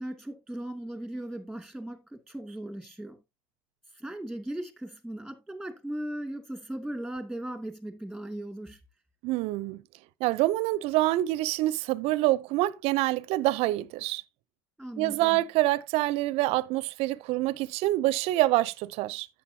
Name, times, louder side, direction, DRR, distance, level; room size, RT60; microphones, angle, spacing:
voice 1, 0.0-3.2 4.0-8.8 14.8-15.4, right 1 dB, ahead, 2.4 m, -38 dB
voice 2, 9.2-9.8 10.2-14.2 15.0-19.3, right 17 dB, 55° right, 0.6 m, -26 dB
11.0 x 7.6 x 2.8 m
hypercardioid pair, 95°, 12 cm